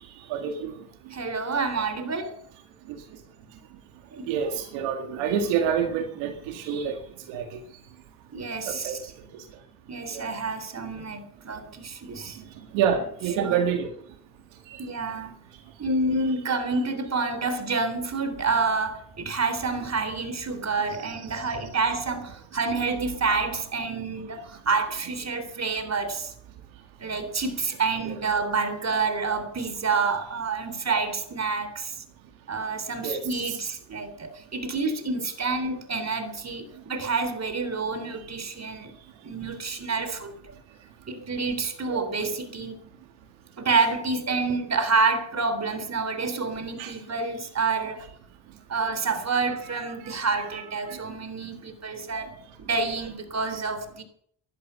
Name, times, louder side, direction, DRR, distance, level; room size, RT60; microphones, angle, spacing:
voice 1, 0.3-0.8 4.3-7.0 7.3-7.6 8.7-9.0 10.1-10.2 12.7-13.9 14.7-14.8 21.3-21.4 23.9-24.0 28.0-28.1 33.0-33.2 38.1-38.2 41.9-42.0 46.8-47.0 50.0-50.2 50.9-51.0, right 7 dB, 85° right, 2.1 m, -27 dB
voice 2, 1.1-2.4 4.1-4.3 8.3-9.1 9.9-12.4 13.4-13.7 14.8-15.4 15.8-26.3 27.0-31.9 32.5-38.9 39.2-40.5 41.1-42.8 43.6-48.1 48.7-52.4 52.7-54.0, right 4 dB, 35° right, 3.7 m, -28 dB
15.0 x 12.0 x 6.9 m
supercardioid pair, 70°, 45 cm